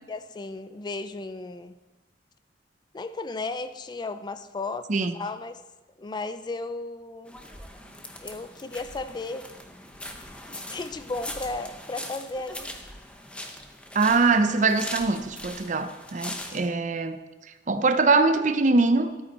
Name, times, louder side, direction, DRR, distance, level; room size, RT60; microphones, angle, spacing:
voice 1, 0.1-1.8 2.9-5.6 6.0-7.4 8.2-9.5 10.5-12.7, left 3 dB, 25° left, 11 dB, 0.3 m, -35 dB
sound 1, 7.3-16.7, left 1 dB, 5° left, 0.8 m, -40 dB
voice 2, 13.9-17.2 17.7-19.1, right 3 dB, 45° right, 10 dB, 0.6 m, -22 dB
12.5 x 8.8 x 4.2 m, 1.1 s
head